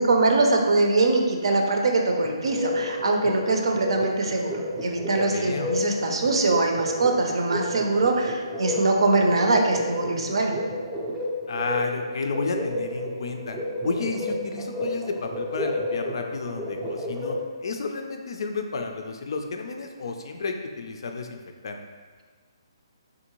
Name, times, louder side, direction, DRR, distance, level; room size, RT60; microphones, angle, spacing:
voice 1, 0.0-10.6, right 2 dB, 70° right, 2 dB, 0.5 m, -23 dB
sound 1, 2.1-17.5, left 1 dB, 5° right, 0.4 m, -31 dB
voice 2, 5.2-5.7 11.5-13.6 13.8-17.4 17.6-21.8, left 4 dB, 60° left, 4 dB, 0.4 m, -32 dB
3.6 x 2.6 x 3.0 m, 1.5 s
hypercardioid pair, 155°, 3 cm